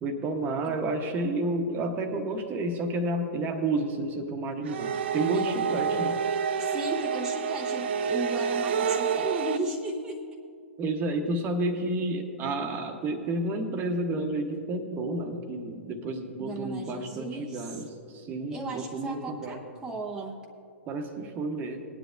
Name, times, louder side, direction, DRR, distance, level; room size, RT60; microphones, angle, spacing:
voice 1, 0.0-6.2 10.8-19.6 20.9-21.9, right 2 dB, 25° right, 5 dB, 1.1 m, -30 dB
sound 1, 4.7-9.6, right 6 dB, 55° right, 0.5 m, -28 dB
voice 2, 5.3-6.0 6.6-10.2 16.4-17.8 18.5-20.4, right 2 dB, 10° right, -2 dB, 0.9 m, -36 dB
19.5 x 10.0 x 2.6 m, 2.3 s
figure-of-eight pair, 110°, 7 cm